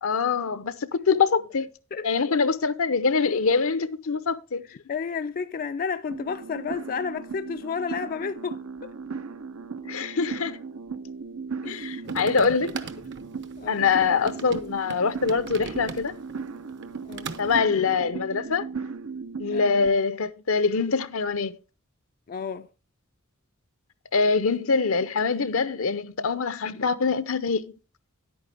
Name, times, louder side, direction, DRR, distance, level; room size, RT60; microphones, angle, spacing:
voice 1, 0.0-1.7 2.0-4.6 9.8-10.6 11.6-12.7 13.7-16.1 17.4-18.6 19.4-21.6 24.1-27.7, left 5 dB, 75° left, 0.8 m, -24 dB
voice 2, 4.9-8.9 11.6-12.1 13.6-13.8 17.0-17.3 19.5-19.6 22.3-22.7, left 6 dB, 45° left, 0.4 m, -32 dB
sound 1, 6.1-19.9, right 5 dB, 80° right, 0.7 m, -37 dB
sound 2, 12.0-16.3 16.7-17.6, right 4 dB, 60° right, 0.9 m, -39 dB
10.0 x 8.8 x 3.4 m
head